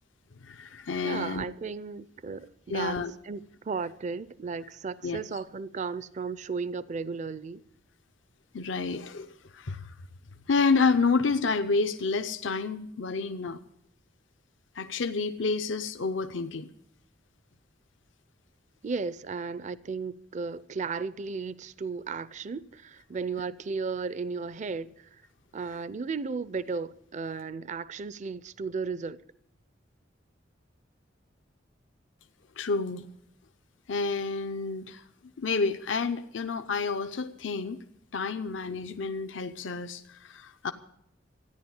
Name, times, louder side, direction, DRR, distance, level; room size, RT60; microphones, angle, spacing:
voice 1, 0.4-1.4 2.7-3.1 5.0-5.2 8.5-9.3 9.5-9.9 10.5-13.6 14.7-16.7 32.6-33.0 33.9-35.0 35.4-37.8 38.1-40.7, left 4 dB, 80° left, 0.7 m, -29 dB
voice 2, 1.0-3.0 3.2-7.6 18.8-25.1 25.5-29.2, right 5 dB, 40° right, 0.5 m, -35 dB
14.0 x 10.0 x 8.0 m
head